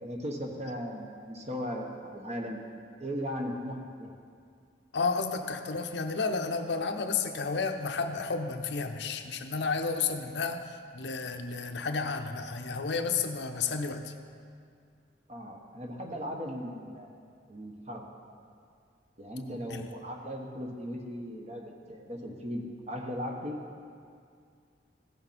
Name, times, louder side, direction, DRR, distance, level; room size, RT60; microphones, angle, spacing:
voice 1, 0.0-2.6 3.0-4.1 15.3-17.1 17.5-18.0 19.2-23.6, equal, 40° right, 2 dB, 1.1 m, -37 dB
voice 2, 4.9-14.1 19.7-19.9, left 4 dB, 80° left, 6 dB, 0.7 m, -32 dB
15.5 x 6.8 x 4.3 m, 2.3 s
head